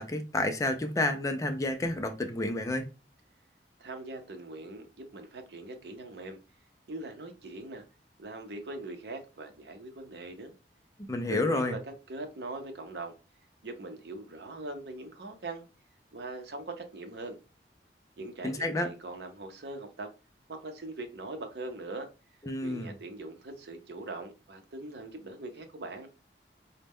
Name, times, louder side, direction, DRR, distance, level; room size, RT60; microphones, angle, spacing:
voice 1, 0.0-2.9 11.1-11.7 18.4-18.9 22.4-22.9, left 2 dB, 20° left, 0.3 m, -30 dB
voice 2, 3.8-6.4 6.9-7.8 8.2-10.5 11.3-11.8 12.1-13.1 13.6-15.7 16.1-17.3 18.2-20.1 20.5-22.1 22.6-26.1, right 2 dB, 70° right, 0.6 m, -41 dB
4.0 x 2.1 x 3.5 m
head